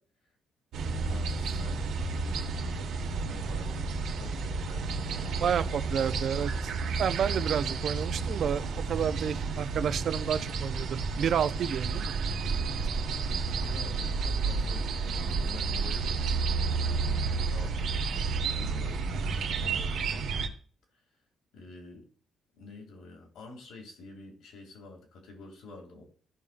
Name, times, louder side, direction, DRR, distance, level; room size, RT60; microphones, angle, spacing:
sound 1, 0.7-20.5, right 4 dB, 80° right, 1.4 m, -31 dB
voice 1, 1.0-5.7 5.9-6.2 13.6-16.3 17.2-18.0 18.5-20.3 21.5-22.1 22.5-26.0, left 2 dB, 85° left, 2.5 m, -48 dB
voice 2, 5.4-6.5 7.0-12.1, right 8 dB, 60° right, 0.5 m, -30 dB
15.0 x 5.5 x 2.5 m
cardioid pair, 125°, 0 cm